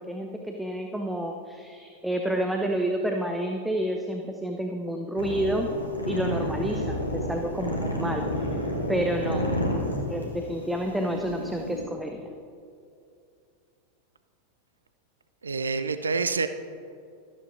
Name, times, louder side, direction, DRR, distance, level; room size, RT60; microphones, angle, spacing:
voice 1, 0.0-5.7 6.1-8.2 8.9-9.5 10.1-12.3, right 1 dB, ahead, 2 dB, 0.6 m, -29 dB
sound 1, 5.2-11.8, left 1 dB, 85° left, 1.5 m, -30 dB
voice 2, 15.4-16.5, right 4 dB, 75° right, 10 dB, 0.4 m, -27 dB
13.0 x 11.5 x 2.6 m, 2.5 s
figure-of-eight pair, 90°, 0 cm